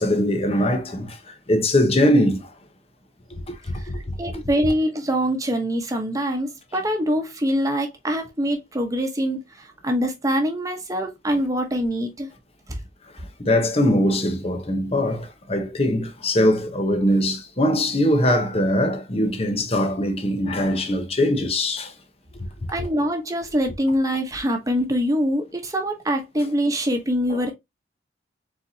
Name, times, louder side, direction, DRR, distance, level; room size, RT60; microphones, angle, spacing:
voice 1, 0.0-2.5 3.5-4.2 13.4-21.9 22.4-22.5 22.8-22.9 27.3-27.4, left 1 dB, 35° left, 1.0 m, -22 dB
voice 2, 4.2-12.3 12.7-12.8 22.7-27.5, equal, 20° right, 1.1 m, -24 dB
4.5 x 4.1 x 2.7 m
head